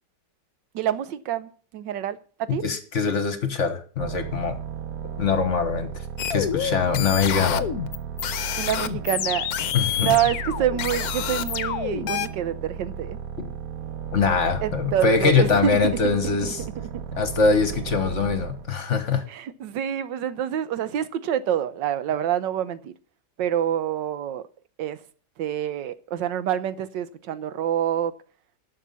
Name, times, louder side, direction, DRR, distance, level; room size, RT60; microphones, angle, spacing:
voice 1, 0.7-2.2 2.5-2.6 8.6-9.5 10.0-13.2 14.6-16.0 16.4-16.5 19.3-22.9 23.4-24.4 24.8-25.0 25.4-28.1, right 10 dB, 85° right, 1.5 m, -27 dB
voice 2, 2.5-4.6 5.2-6.0 6.3-7.7 9.7-10.2 13.4-13.5 14.1-16.6 17.1-19.2, left 5 dB, 45° left, 1.4 m, -23 dB
sound 1, 4.0-18.7, right 7 dB, 60° right, 1.3 m, -35 dB
sound 2, 6.2-12.3, left 10 dB, 65° left, 1.1 m, -28 dB
11.5 x 6.5 x 7.0 m
omnidirectional pair, 1.9 m